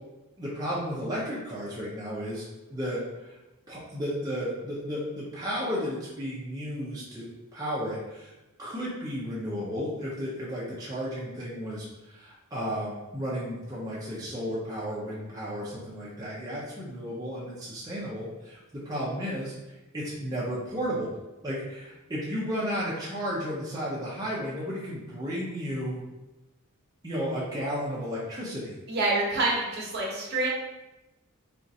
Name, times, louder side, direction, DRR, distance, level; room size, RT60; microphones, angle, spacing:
voice 1, 0.4-2.4 2.7-3.4 3.7-8.3 8.6-21.1 21.4-26.0 27.0-28.7, equal, 15° right, -7 dB, 0.6 m, -33 dB
voice 2, 28.9-30.5, right 2 dB, 50° right, -4 dB, 0.9 m, -27 dB
4.3 x 2.4 x 2.6 m, 1.0 s
head